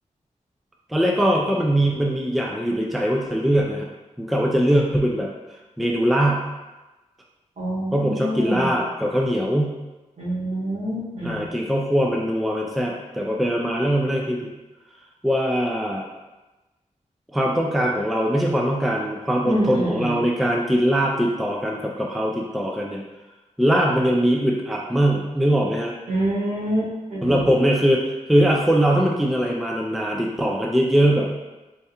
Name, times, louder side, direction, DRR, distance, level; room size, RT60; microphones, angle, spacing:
voice 1, 0.9-3.9 4.2-5.3 5.8-6.5 7.9-9.8 11.2-14.5 15.2-16.0 17.3-23.0 23.6-25.9 27.2-28.0 28.3-31.3, equal, ahead, -1 dB, 0.3 m, -21 dB
voice 2, 7.6-8.7 10.2-11.5 19.4-20.2 26.1-27.5, right 1 dB, 65° right, -7 dB, 1.4 m, -26 dB
3.4 x 3.3 x 2.8 m, 1.1 s
wide cardioid pair, 160°, 13 cm